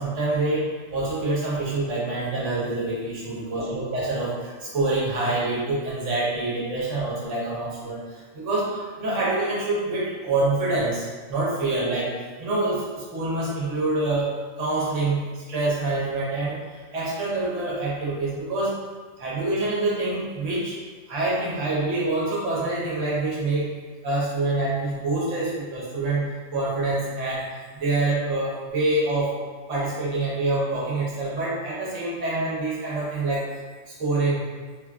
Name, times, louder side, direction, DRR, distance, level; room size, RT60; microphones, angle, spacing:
voice 1, 0.0-12.1 12.4-14.3 14.6-16.6 16.9-18.7 19.2-20.7 21.1-23.7 24.0-26.3 26.5-27.4 27.7-29.3 29.7-33.4 34.0-34.4, right 2 dB, 65° right, -6 dB, 1.2 m, -26 dB
3.3 x 2.4 x 2.3 m, 1.4 s
omnidirectional pair, 1.4 m